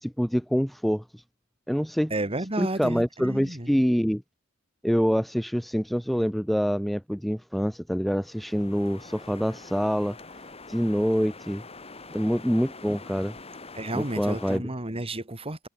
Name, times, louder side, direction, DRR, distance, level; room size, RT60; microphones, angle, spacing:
voice 1, 0.0-1.2 1.7-2.1 2.6-4.2 4.8-10.2 10.7-11.6 12.1-13.4 13.9-14.6, equal, ahead, 0.5 m, -26 dB
voice 2, 2.1-3.8 13.7-15.7, right 1 dB, 25° right, 2.7 m, -32 dB
sound 1, 8.1-14.6, left 3 dB, 30° left, 5.6 m, -45 dB
head